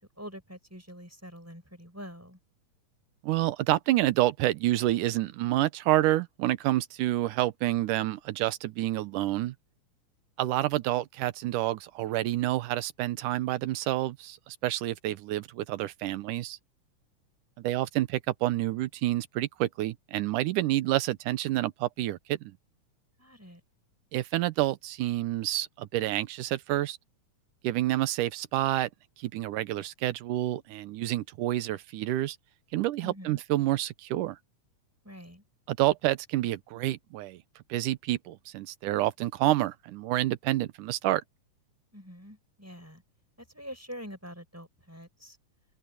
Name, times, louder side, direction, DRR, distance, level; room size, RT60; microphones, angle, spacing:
voice 1, 0.2-2.4 23.2-23.6 33.0-33.4 35.0-35.4 41.9-43.0 43.5-45.4, equal, 5° right, 6.2 m, -45 dB
voice 2, 3.2-9.5 10.4-16.6 17.6-22.5 24.1-27.0 27.6-28.9 29.2-32.4 32.7-34.4 35.7-37.4 37.7-41.2, right 15 dB, 80° right, 2.4 m, -28 dB
open air
omnidirectional pair, 3.6 m